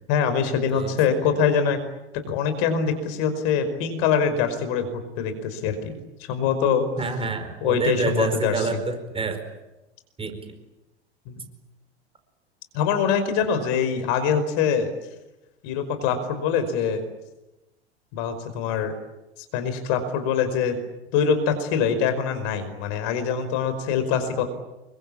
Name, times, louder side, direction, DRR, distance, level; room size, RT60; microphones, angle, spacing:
voice 1, 0.1-1.8 2.3-4.9 5.2-6.0 6.3-6.9 7.6-8.5 11.3-11.4 12.7-14.9 15.6-17.0 18.1-18.9 19.5-20.8 21.1-24.4, left 7 dB, 50° left, 9 dB, 5.2 m, -23 dB
voice 2, 7.0-9.4 10.2-10.5, right 4 dB, 15° right, 7 dB, 4.7 m, -27 dB
27.5 x 23.5 x 8.7 m, 0.99 s
figure-of-eight pair, 85°, 33 cm